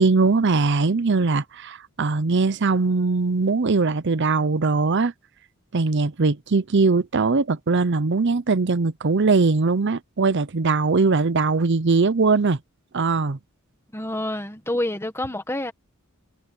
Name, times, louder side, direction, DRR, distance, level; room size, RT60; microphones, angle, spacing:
voice 1, 0.0-5.1 5.7-12.6 12.9-13.4, right 4 dB, 55° right, 0.7 m, -21 dB
voice 2, 13.9-15.7, left 1 dB, 10° left, 1.5 m, -28 dB
head